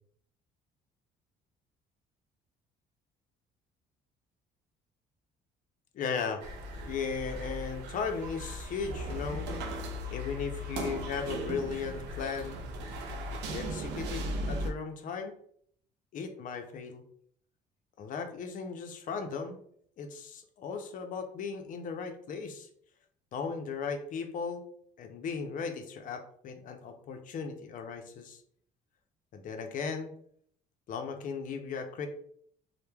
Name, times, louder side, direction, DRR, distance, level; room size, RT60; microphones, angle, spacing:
voice 1, 5.9-6.4 6.8-9.5 10.1-12.6 13.5-15.3 16.1-17.0 18.0-19.6 20.0-22.7 23.3-24.7 25.0-28.4 29.3-30.1 30.9-32.1, left 5 dB, 50° left, 5 dB, 0.5 m, -36 dB
sound 1, 6.4-14.7, equal, 90° right, 0.4 m, -37 dB
3.0 x 2.1 x 2.2 m, 0.63 s
cardioid pair, 110°, 17 cm